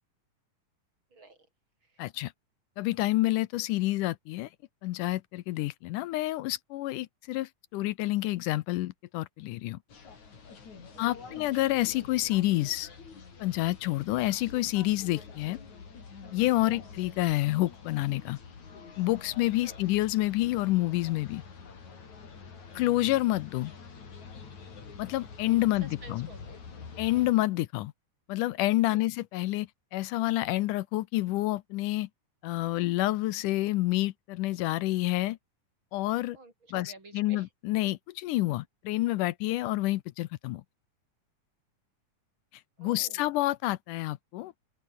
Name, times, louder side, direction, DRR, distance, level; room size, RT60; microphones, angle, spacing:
voice 1, 1.1-1.5 1.8-2.0 10.9-11.4 16.7-16.9 19.6-19.8 25.8-26.6 28.9-29.1 36.3-37.5 42.8-43.3, right 3 dB, 35° right, 7.4 m, -51 dB
voice 2, 2.0-2.3 2.8-4.5 4.8-9.8 11.0-12.9 13.4-15.6 16.3-18.4 19.0-21.4 22.7-23.7 25.0-26.3 27.0-27.9 28.3-32.1 32.4-35.4 35.9-36.4 36.7-40.6 42.8-44.5, left 17 dB, 75° left, 2.1 m, -28 dB
sound 1, 9.9-27.3, left 5 dB, 55° left, 5.4 m, -47 dB
open air
omnidirectional pair, 4.0 m